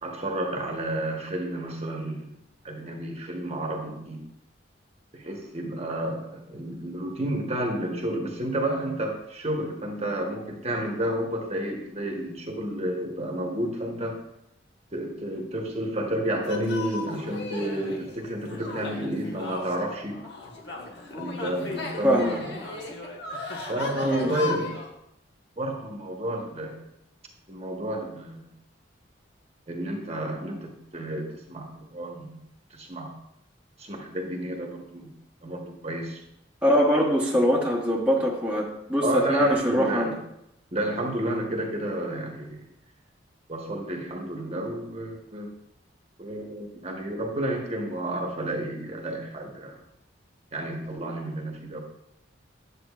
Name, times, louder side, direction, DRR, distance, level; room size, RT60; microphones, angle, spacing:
voice 1, 0.0-2.4 2.6-4.2 5.1-14.2 14.9-20.2 21.2-22.5 23.7-24.7 25.6-26.8 27.5-28.5 29.7-32.4 32.7-33.1 33.8-35.1 35.4-36.2 39.0-40.2 40.7-42.6 43.5-45.5 46.2-49.8 50.5-51.8, right 1 dB, 35° right, 1 dB, 1.1 m, -31 dB
sound 1, 16.4-24.9, left 3 dB, 60° left, 1.2 m, -36 dB
voice 2, 22.0-22.4 24.0-24.3 36.6-40.2, equal, 5° right, -4 dB, 0.9 m, -23 dB
9.8 x 7.4 x 2.4 m, 0.83 s
head